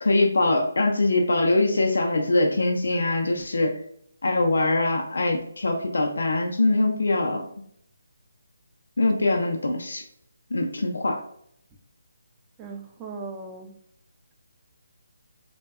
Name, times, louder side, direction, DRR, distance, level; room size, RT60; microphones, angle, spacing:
voice 1, 0.0-3.8 4.2-7.4 9.0-10.0 10.5-11.2, left 2 dB, 75° left, 2 dB, 0.4 m, -23 dB
voice 2, 12.6-13.7, right 4 dB, 15° right, 1 dB, 0.3 m, -38 dB
2.6 x 2.1 x 2.3 m, 0.68 s
figure-of-eight pair, 160°, 0 cm